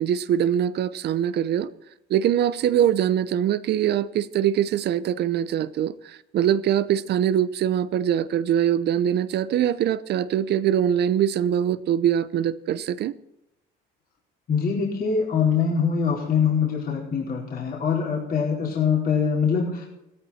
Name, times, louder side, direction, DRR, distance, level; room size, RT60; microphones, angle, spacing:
voice 1, 0.0-1.7 2.1-13.1, right 10 dB, 55° right, 0.8 m, -23 dB
voice 2, 14.5-19.9, left 6 dB, 45° left, 4.4 m, -23 dB
15.5 x 13.5 x 4.3 m
cardioid pair, 105°, 20 cm